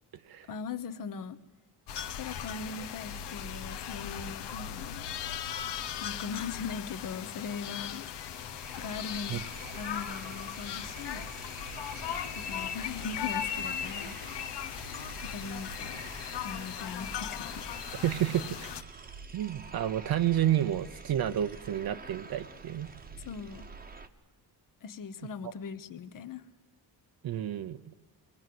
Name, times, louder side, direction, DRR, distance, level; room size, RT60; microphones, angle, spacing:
voice 1, 0.5-1.4 2.1-5.0 6.0-8.1 8.7-9.4 9.7-11.2 12.3-14.2 15.2-16.0 16.4-17.9 23.2-23.7 24.8-26.4, left 5 dB, 50° left, 12 dB, 1.2 m, -40 dB
sound 1, 1.9-18.8, left 9 dB, 80° left, 1.2 m, -38 dB
sound 2, 7.1-7.2 7.4-24.1, right 4 dB, 20° right, 1.1 m, -47 dB
voice 2, 18.0-18.7 19.3-22.9 25.4-25.5 27.2-27.9, right 11 dB, 60° right, 9 dB, 0.8 m, -30 dB
23.5 x 19.5 x 7.8 m, 1.3 s
wide cardioid pair, 165°, 41 cm